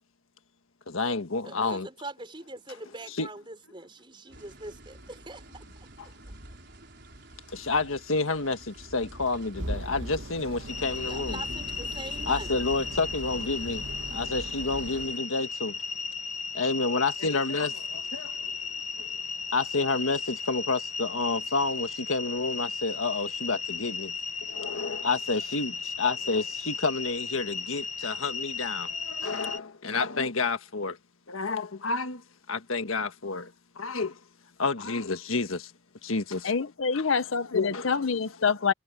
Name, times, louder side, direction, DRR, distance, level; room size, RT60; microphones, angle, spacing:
voice 1, 0.9-1.9 3.2-3.3 6.0-6.1 7.5-11.4 12.3-13.8 14.1-15.8 16.5-18.5 19.0-19.1 19.5-24.1 24.5-31.0 31.3-34.2 34.6-35.7 36.0-36.5 36.9-37.1 37.5-37.9, left 3 dB, 90° left, 1.5 m, -30 dB
voice 2, 1.4-5.6 6.0-6.1 11.1-12.5, right 2 dB, 25° right, 5.1 m, -42 dB
sound 1, 4.3-15.2, right 1 dB, 55° right, 5.2 m, -43 dB
sound 2, 9.6-15.1, right 2 dB, 75° right, 1.3 m, -42 dB
sound 3, 10.7-29.6, left 5 dB, 35° left, 1.1 m, -35 dB
voice 3, 36.4-38.7, left 5 dB, 75° left, 0.8 m, -26 dB
head